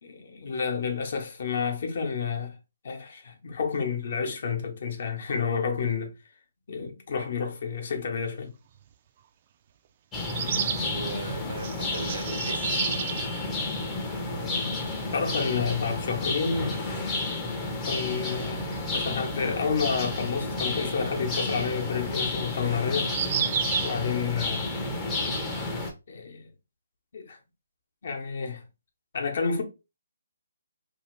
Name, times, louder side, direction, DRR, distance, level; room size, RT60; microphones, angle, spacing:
voice 1, 0.0-2.6 2.8-6.1 6.7-8.5 14.3-14.8 15.1-16.8 17.9-18.6 18.9-23.2 23.8-24.7 26.1-26.5 27.1-27.4 28.0-28.6 29.1-29.6, left 5 dB, 55° left, 0.9 m, -30 dB
sound 1, 8.8-8.9 10.2-10.9 11.6-13.3 14.5-14.6 14.8-14.9 17.3-17.4 20.5-20.6 23.0-24.0, right 8 dB, 35° right, 0.3 m, -30 dB
sound 2, 10.1-25.9, left 2 dB, 15° left, 0.6 m, -31 dB
voice 2, 10.8-12.8 25.2-25.5, right 3 dB, 75° right, 0.8 m, -38 dB
2.7 x 2.5 x 3.1 m
hypercardioid pair, 160°, 0 cm